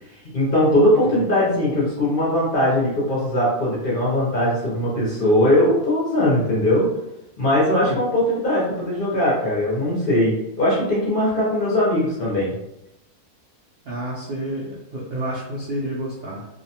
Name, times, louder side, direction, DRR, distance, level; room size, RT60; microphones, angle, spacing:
voice 1, 0.3-6.9 7.4-12.5, left 1 dB, 50° left, -6 dB, 0.7 m, -20 dB
voice 2, 13.8-16.5, right 1 dB, 65° right, -6 dB, 0.6 m, -29 dB
2.5 x 2.1 x 2.7 m, 0.87 s
omnidirectional pair, 1.5 m